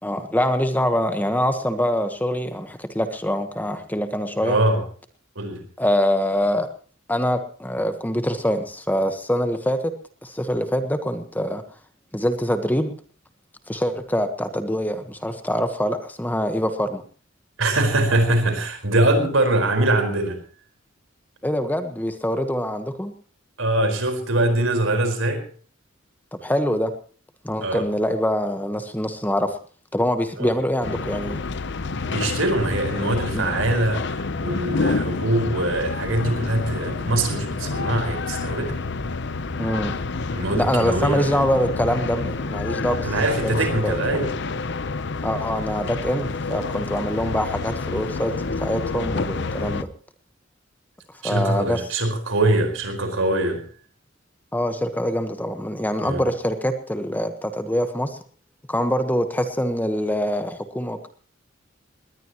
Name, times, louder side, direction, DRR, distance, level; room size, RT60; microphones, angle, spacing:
voice 1, 0.0-4.6 5.8-6.7 7.1-9.9 10.2-11.6 12.1-13.0 13.7-17.0 21.4-23.1 26.4-26.9 27.4-29.6 29.9-31.4 33.3-33.5 39.6-39.9 40.5-43.1 43.4-44.3 45.2-49.9 51.2-51.8 54.5-58.2 58.7-61.1, equal, 10° left, 8 dB, 1.2 m, -24 dB
voice 2, 4.4-4.8 5.3-5.6 17.6-20.4 23.6-25.4 27.6-27.8 30.4-30.5 32.0-38.8 40.3-41.5 43.0-44.3 51.2-53.6 56.0-56.2, right 2 dB, 85° right, 6 dB, 4.7 m, -23 dB
sound 1, 30.8-49.8, left 3 dB, 60° left, 0.8 m, -28 dB
19.5 x 19.5 x 3.0 m, 0.42 s
head